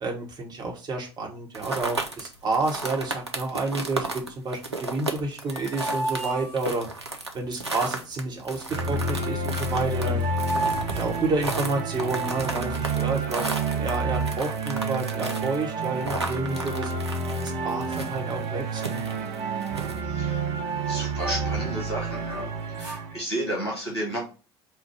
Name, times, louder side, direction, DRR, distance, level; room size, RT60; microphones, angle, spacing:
voice 1, 0.0-6.9 7.3-10.2 10.9-13.4 13.7-16.9 17.4-19.0, right 3 dB, 30° right, 0 dB, 1.1 m, -30 dB
sound 1, 1.5-20.0, right 2 dB, 90° right, 0.5 m, -34 dB
sound 2, 5.2-7.2 9.3-9.4 9.7-11.9 13.3-14.1 14.6-14.7 15.0-16.1 16.4-16.8 17.3-18.0 18.3-18.4 18.7-21.6 22.0-23.1, right 1 dB, 70° right, 1.4 m, -36 dB
sound 3, 8.7-23.2, right 3 dB, 45° right, 0.7 m, -29 dB
voice 2, 20.9-22.5 22.7-24.2, right 1 dB, 80° left, -3 dB, 1.7 m, -32 dB
4.4 x 2.2 x 4.6 m, 0.33 s
figure-of-eight pair, 65°, 14 cm